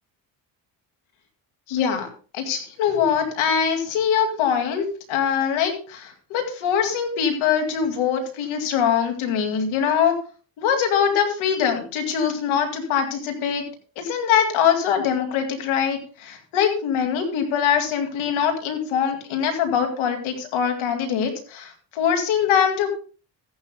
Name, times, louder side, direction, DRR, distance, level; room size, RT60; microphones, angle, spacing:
voice 1, 1.7-2.1 2.3-10.1 10.6-13.6 14.0-22.9, left 7 dB, 85° left, 5 dB, 2.4 m, -23 dB
14.5 x 11.0 x 2.2 m, 0.38 s
cardioid pair, 80°, 47 cm